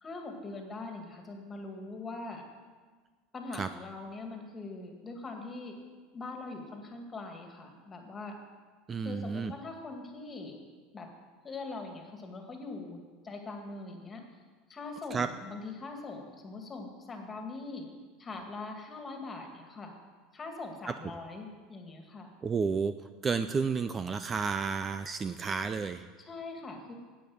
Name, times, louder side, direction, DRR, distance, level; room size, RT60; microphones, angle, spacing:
voice 1, 0.0-2.4 3.3-5.8 6.1-8.4 9.0-10.6 10.9-11.1 11.4-14.2 14.7-17.9 18.2-19.9 20.3-22.3 26.2-26.9, left 3 dB, 20° left, 3 dB, 2.0 m, -42 dB
voice 2, 8.9-9.5 15.1-15.3 20.9-21.0 22.4-22.9 23.2-26.1, right 5 dB, 25° right, 11 dB, 0.4 m, -31 dB
10.0 x 8.5 x 7.1 m, 1.5 s
supercardioid pair, 125°, 0 cm